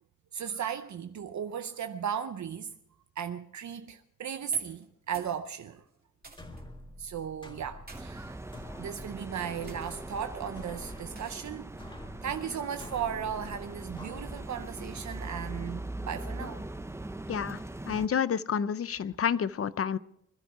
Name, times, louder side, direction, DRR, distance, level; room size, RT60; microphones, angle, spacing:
voice 1, 0.3-2.7 3.2-5.8 7.0-8.4 8.8-11.7 12.2-16.6, right 8 dB, 75° right, 0.6 m, -36 dB
sound 1, 4.5-5.4 5.7-6.6 7.5-8.0 8.8-9.1 9.7-9.9 11.2-11.6, right 3 dB, 30° right, 2.5 m, -52 dB
sound 2, 6.2-15.7, left 1 dB, 15° left, 1.9 m, -48 dB
sound 3, 7.9-18.1, right 2 dB, 10° right, 0.5 m, -41 dB
voice 2, 17.3-17.6 17.9-20.0, left 7 dB, 50° left, 0.5 m, -29 dB
21.5 x 12.5 x 4.7 m
wide cardioid pair, 150°, 29 cm